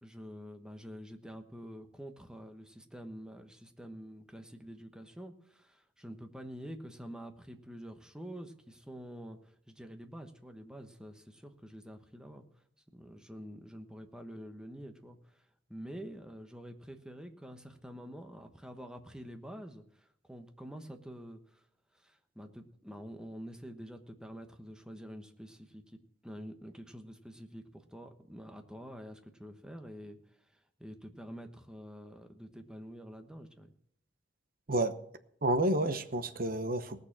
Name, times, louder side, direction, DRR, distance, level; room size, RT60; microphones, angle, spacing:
voice 1, 0.0-12.4 12.9-21.6 21.9-33.7, equal, 5° right, 1.1 m, -47 dB
voice 2, 35.4-37.0, right 1 dB, 50° right, 0.9 m, -30 dB
18.0 x 6.6 x 7.3 m
head